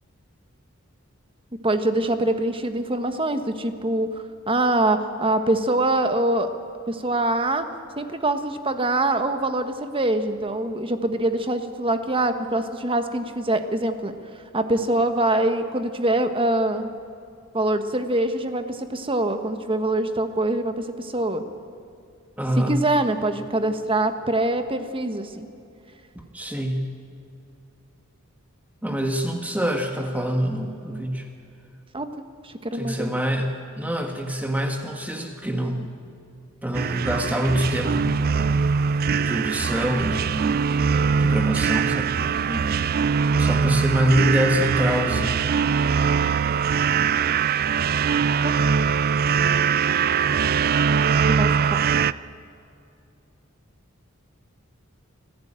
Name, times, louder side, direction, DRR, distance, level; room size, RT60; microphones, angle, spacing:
voice 1, 1.6-6.5 6.9-7.6 8.0-14.1 14.5-16.9 17.5-21.4 22.6-25.4 31.9-32.1 32.4-33.1 42.5-42.8 48.4-48.5 51.3-51.8, right 2 dB, 25° right, 8 dB, 1.4 m, -24 dB
voice 2, 22.4-22.8 26.1-26.9 28.8-31.3 32.7-35.9 36.6-38.1 39.2-40.6 41.2-42.1 43.3-45.4, equal, 5° right, 4 dB, 1.5 m, -25 dB
sound 1, 36.7-52.1, right 6 dB, 45° right, 0.4 m, -22 dB
26.0 x 14.5 x 8.9 m, 2.6 s
head